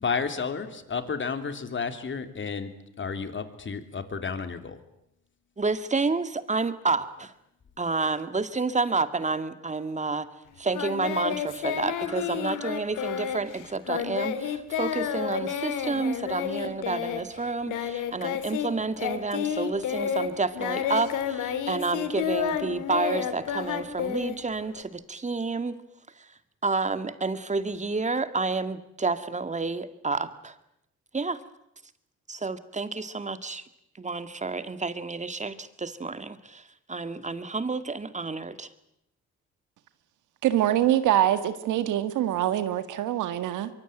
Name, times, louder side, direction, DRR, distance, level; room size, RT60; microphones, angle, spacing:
voice 1, 0.0-2.7 3.0-4.8, left 5 dB, 40° left, 9 dB, 3.2 m, -31 dB
voice 2, 5.6-7.3 7.8-10.3 10.6-25.8 26.6-30.5 31.1-31.4 32.3-33.6 34.0-36.6 36.9-38.7, right 3 dB, 25° right, 11 dB, 2.1 m, -30 dB
Singing, 10.7-18.7 19.0-24.8, left 8 dB, 85° left, 2.6 m, -30 dB
voice 3, 40.4-43.7, right 12 dB, 90° right, 11 dB, 1.9 m, -24 dB
24.0 x 23.5 x 9.1 m, 0.79 s
cardioid pair, 90°, 30 cm